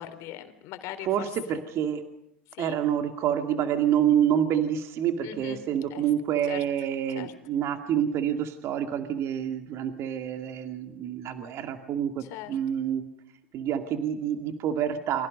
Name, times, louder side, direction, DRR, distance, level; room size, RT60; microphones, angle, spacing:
voice 1, 0.0-1.6 2.5-2.8 5.2-5.6 5.9-6.1 6.5-6.6 7.1-7.3 12.2-12.6, left 12 dB, 55° left, 9 dB, 3.7 m, -40 dB
voice 2, 1.0-2.0 2.6-13.1 13.5-15.3, right 9 dB, 50° right, 6 dB, 2.3 m, -27 dB
29.0 x 24.5 x 5.4 m, 0.72 s
hypercardioid pair, 85°, 6 cm